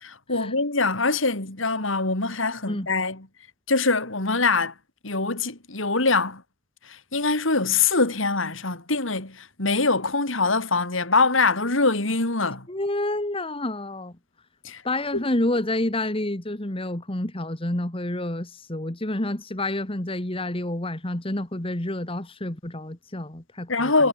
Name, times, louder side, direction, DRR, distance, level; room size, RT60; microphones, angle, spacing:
voice 1, 0.0-3.3 3.7-4.7 5.0-6.4 6.9-12.7 14.6-14.8 23.7-24.1, left 3 dB, 75° left, 3.8 m, -23 dB
voice 2, 12.7-14.2 14.8-24.1, left 1 dB, 25° left, 1.8 m, -29 dB
head